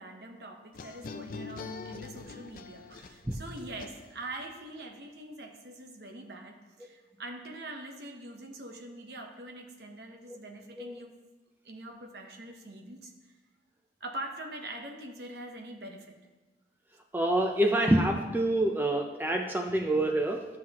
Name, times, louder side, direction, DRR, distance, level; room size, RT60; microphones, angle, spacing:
voice 1, 0.0-11.1 11.6-13.1 14.0-16.2, right 1 dB, 65° right, 3 dB, 0.9 m, -43 dB
sound 1, 0.7-4.4, left 4 dB, 50° left, 0.4 m, -43 dB
voice 2, 17.1-20.5, right 1 dB, 10° right, 3 dB, 0.4 m, -26 dB
12.0 x 5.7 x 2.9 m, 1.2 s
head